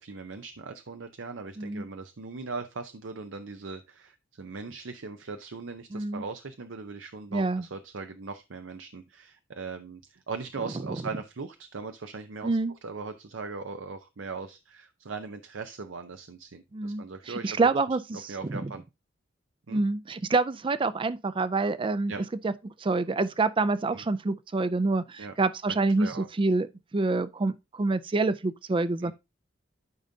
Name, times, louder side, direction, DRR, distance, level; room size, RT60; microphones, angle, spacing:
voice 1, 0.0-17.7 18.3-18.8 19.7-19.8 22.1-22.2 23.9-24.0 25.2-25.3 26.0-26.3 29.0-29.1, right 4 dB, 85° right, 0.7 m, -39 dB
voice 2, 5.9-6.2 7.3-7.6 12.4-12.7 16.7-18.7 19.7-22.1 22.4-29.1, right 3 dB, 25° right, 0.4 m, -27 dB
12.5 x 5.2 x 2.7 m
head